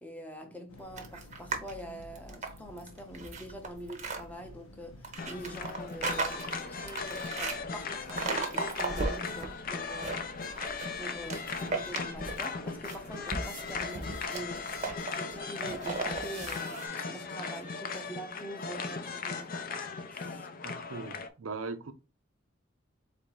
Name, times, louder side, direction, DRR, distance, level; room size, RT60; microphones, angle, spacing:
voice 1, 0.0-10.6 11.0-19.8 20.1-20.5, equal, 5° left, 0.7 m, -45 dB
sound 1, 0.7-15.0, left 1 dB, 90° left, 0.7 m, -53 dB
sound 2, 1.0-1.7 2.1-4.2 5.0-7.6 8.1-9.5 9.8-10.9 11.3-12.5 12.8-16.9, right 3 dB, 35° right, 0.7 m, -36 dB
sound 3, 5.2-21.3, left 5 dB, 40° left, 0.5 m, -38 dB
voice 2, 20.6-21.9, right 4 dB, 75° right, 0.6 m, -40 dB
3.9 x 2.6 x 4.6 m
head